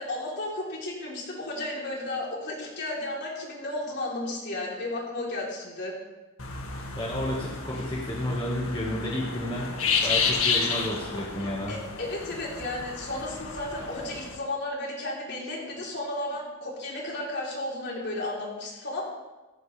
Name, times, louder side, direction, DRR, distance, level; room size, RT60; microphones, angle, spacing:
voice 1, 0.0-5.9 11.7-19.0, left 2 dB, 55° left, -3 dB, 3.8 m, -33 dB
sound 1, 6.4-14.4, left 5 dB, 85° left, 1.9 m, -31 dB
voice 2, 7.0-11.7, left 1 dB, 25° left, -4 dB, 1.7 m, -31 dB
15.0 x 15.0 x 3.4 m, 1.2 s
head